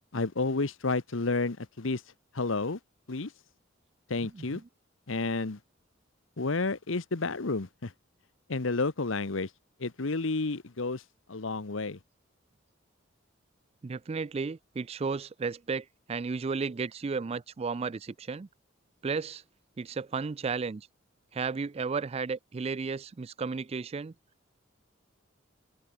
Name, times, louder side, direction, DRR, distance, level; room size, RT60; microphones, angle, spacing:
voice 1, 0.1-2.0 2.3-2.8 3.1-3.3 4.1-4.6 5.1-5.6 6.4-7.9 8.5-9.5 9.8-11.0 11.3-12.0, left 3 dB, 75° left, 1.1 m, -30 dB
voice 2, 13.8-18.5 19.0-19.4 19.8-20.9 21.3-24.1, right 4 dB, 30° right, 0.4 m, -33 dB
head